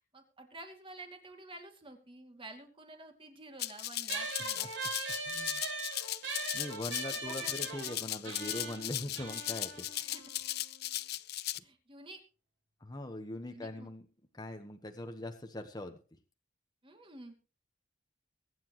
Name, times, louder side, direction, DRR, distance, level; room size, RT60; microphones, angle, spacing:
voice 1, 0.1-4.7 6.9-7.5 9.9-10.2 11.6-12.2 13.5-13.9 16.8-17.3, right 2 dB, 30° right, 5 dB, 2.6 m, -50 dB
Rattle (instrument), 3.6-11.6, left 14 dB, 55° left, 0.5 m, -37 dB
sound 1, 4.1-10.9, right 3 dB, 75° right, 7.8 m, -41 dB
voice 2, 5.3-5.6 6.5-10.0 11.0-11.2 11.5-11.6 12.8-14.1 14.3-16.0, left 1 dB, 20° left, 5 dB, 1.2 m, -42 dB
23.0 x 9.6 x 3.1 m, 0.35 s
head